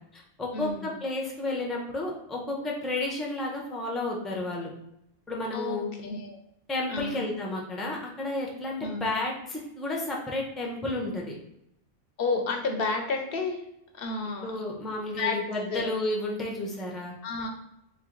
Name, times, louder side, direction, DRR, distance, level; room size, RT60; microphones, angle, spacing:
voice 1, 0.0-4.7 5.3-5.9 6.7-11.3 14.4-17.1, left 2 dB, ahead, -1 dB, 0.4 m, -32 dB
voice 2, 0.5-0.9 5.5-6.4 6.9-7.3 8.8-9.1 12.2-13.6 13.9-14.5 15.1-15.4 15.7-15.9 17.2-17.5, left 4 dB, 60° left, 4 dB, 0.7 m, -31 dB
3.3 x 3.2 x 3.8 m, 0.81 s
omnidirectional pair, 1.2 m